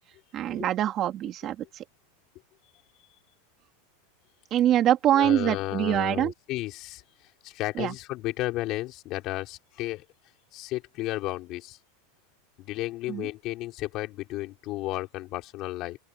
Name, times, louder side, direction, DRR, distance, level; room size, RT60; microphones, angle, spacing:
voice 1, 0.3-1.8 4.5-6.3 7.8-7.9 13.1-13.3, right 11 dB, 35° right, 3.1 m, -24 dB
voice 2, 5.1-7.0 7.4-10.0 10.5-11.8 12.6-16.0, left 17 dB, 40° left, 5.4 m, -33 dB
open air
supercardioid pair, 145°, 0 cm